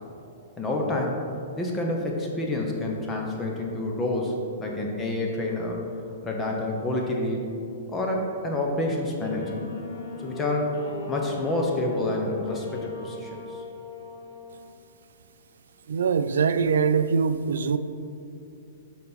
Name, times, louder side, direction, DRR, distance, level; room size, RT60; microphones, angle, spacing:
voice 1, 0.6-1.2 1.6-5.8 6.2-7.5 7.9-9.6 10.2-10.8 11.1-13.6, left 1 dB, 10° left, -1 dB, 0.7 m, -28 dB
sound 1, 9.2-14.6, left 4 dB, 50° left, 1.2 m, -38 dB
voice 2, 15.9-17.8, right 6 dB, 80° right, 12 dB, 0.3 m, -23 dB
8.2 x 4.1 x 4.1 m, 2.6 s
hypercardioid pair, 150°, 0 cm